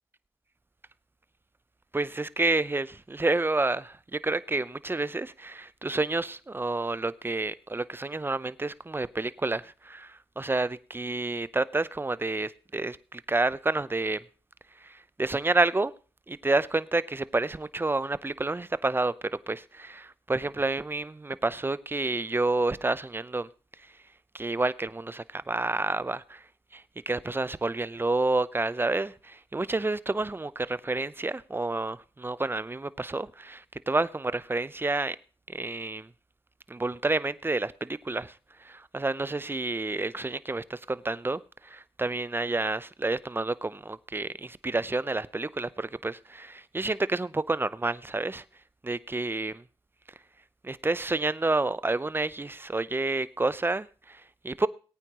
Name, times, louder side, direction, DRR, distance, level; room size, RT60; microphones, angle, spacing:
voice 1, 1.9-14.2 14.8-15.9 16.3-19.1 19.5-23.5 24.3-26.4 26.7-35.2 35.5-36.1 36.7-38.3 38.6-48.4 48.8-49.6 50.6-54.7, right 2 dB, 25° right, 0.7 m, -29 dB
18.5 x 9.0 x 3.0 m
supercardioid pair, 45°, 9 cm